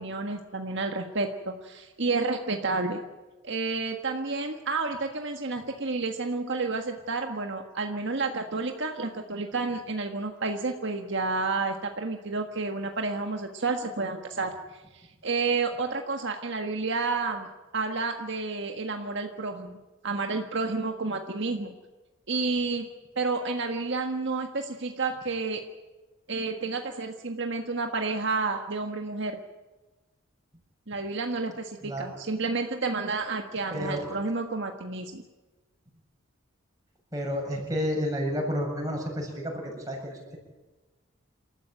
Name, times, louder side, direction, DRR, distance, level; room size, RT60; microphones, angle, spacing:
voice 1, 0.0-3.0 3.4-14.5 14.9-17.5 17.7-19.8 20.0-21.7 22.3-22.9 23.1-25.6 26.3-29.4 30.9-35.2, right 3 dB, 60° right, 4 dB, 1.6 m, -30 dB
voice 2, 33.7-34.1 37.1-40.4, equal, 15° right, 0 dB, 7.7 m, -31 dB
28.0 x 14.0 x 9.1 m, 1.2 s
head